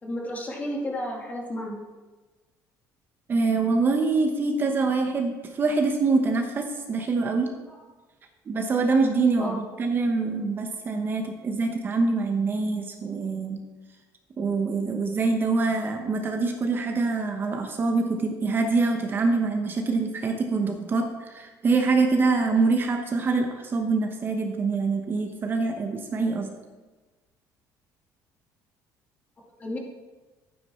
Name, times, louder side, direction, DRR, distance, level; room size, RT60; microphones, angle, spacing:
voice 1, 0.0-1.8 9.4-9.6 29.6-29.8, equal, 25° left, -1 dB, 2.3 m, -32 dB
voice 2, 3.3-7.5 8.5-13.6 14.4-26.5, right 3 dB, 30° right, 4 dB, 1.0 m, -25 dB
11.5 x 9.3 x 4.4 m, 1.3 s
cardioid pair, 140°, 7 cm